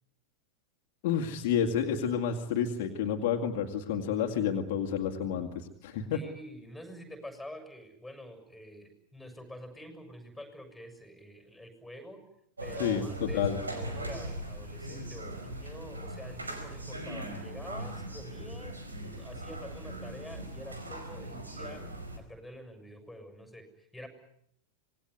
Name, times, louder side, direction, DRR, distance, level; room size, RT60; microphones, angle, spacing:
voice 1, 1.0-6.2 12.8-13.6, left 8 dB, 50° left, 3 dB, 2.2 m, -30 dB
voice 2, 6.1-12.2 12.6-21.8 22.2-24.1, left 1 dB, ahead, 7 dB, 7.1 m, -47 dB
sound 1, 12.6-22.2, right 1 dB, 75° right, 4.8 m, -40 dB
26.5 x 20.0 x 9.7 m, 0.72 s
figure-of-eight pair, 90°, 0 cm